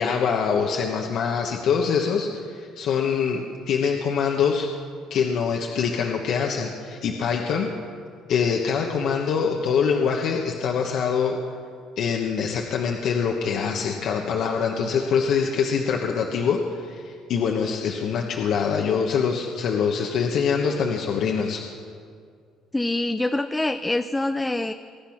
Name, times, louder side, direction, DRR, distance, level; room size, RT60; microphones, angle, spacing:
voice 1, 0.0-4.7 5.1-7.7 8.3-11.4 12.0-21.6, left 6 dB, 60° left, 1 dB, 1.2 m, -24 dB
voice 2, 22.7-24.7, left 2 dB, 10° left, 9 dB, 0.5 m, -25 dB
21.5 x 10.5 x 5.9 m, 2.2 s
cardioid pair, 120°, 0 cm